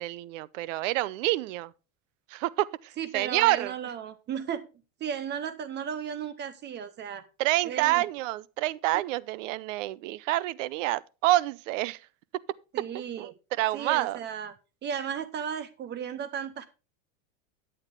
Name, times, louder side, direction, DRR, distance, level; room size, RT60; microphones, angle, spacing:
voice 1, 0.0-1.7 2.3-3.7 7.4-12.0 12.3-12.4 12.9-14.2, right 17 dB, 65° right, 0.7 m, -28 dB
voice 2, 3.0-4.7 5.0-7.2 7.6-8.0 12.7-13.3 13.7-14.5 14.8-16.7, right 8 dB, 25° right, 0.7 m, -35 dB
9.8 x 8.9 x 3.5 m
supercardioid pair, 135°, 42 cm